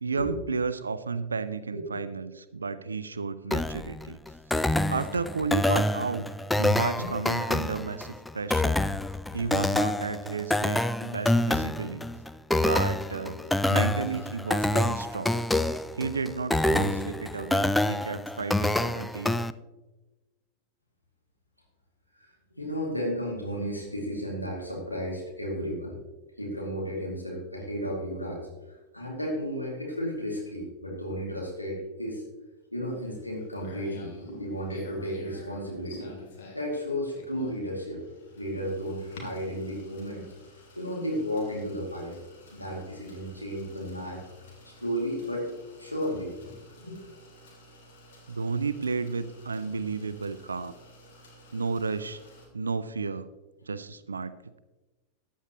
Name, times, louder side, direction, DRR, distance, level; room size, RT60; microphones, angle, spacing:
voice 1, 0.0-4.2 4.9-8.8 9.3-12.0 12.6-13.4 13.7-15.3 16.0-19.4 48.3-50.7 51.5-52.2 52.5-53.3 53.7-54.3, right 4 dB, 75° right, 14 dB, 0.5 m, -32 dB
sound 1, 3.5-19.5, left 1 dB, 5° left, 0.4 m, -27 dB
voice 2, 22.2-26.0 26.4-32.2 32.7-34.1 34.4-36.1 36.5-38.0 38.4-40.3 40.8-42.2 42.5-44.2 44.6-45.5 45.8-46.3 46.8-47.0, equal, 90° left, -3 dB, 2.4 m, -33 dB
sound 2, 32.9-52.5, left 1 dB, 55° left, 3.0 m, -49 dB
14.5 x 10.0 x 3.0 m, 1.1 s
figure-of-eight pair, 90°, 0 cm